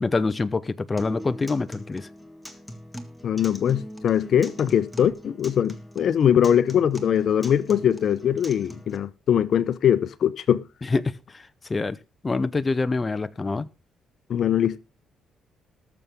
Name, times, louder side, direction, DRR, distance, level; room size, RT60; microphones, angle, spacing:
voice 1, 0.0-2.1 10.9-11.4 11.7-12.0 12.2-13.7, left 3 dB, 25° left, 0.7 m, -25 dB
Acoustic guitar, 1.0-9.0, equal, 5° left, 1.9 m, -41 dB
voice 2, 3.2-10.6 14.3-14.8, left 9 dB, 60° left, 0.7 m, -22 dB
19.5 x 7.0 x 3.6 m
cardioid pair, 90°, 0 cm